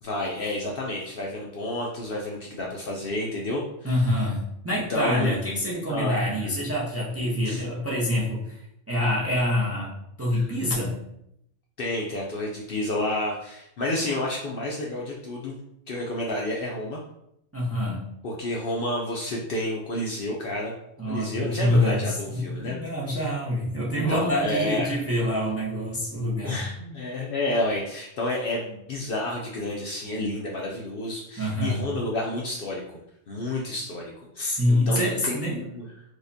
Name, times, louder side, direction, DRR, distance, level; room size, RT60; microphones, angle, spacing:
voice 1, 0.0-4.1 4.9-5.4 5.9-6.2 7.5-7.6 10.3-10.5 11.8-15.6 15.9-17.0 18.2-20.7 21.0-22.8 23.9-25.0 26.4-32.8 33.3-35.9, left 1 dB, 60° left, -2 dB, 0.6 m, -30 dB
voice 2, 3.8-8.6 8.9-9.9 10.2-11.0 17.5-18.1 21.0-26.6 31.4-31.8 34.4-35.6, left 1 dB, 15° right, -5 dB, 0.5 m, -26 dB
4.8 x 2.1 x 2.6 m, 0.78 s
omnidirectional pair, 1.3 m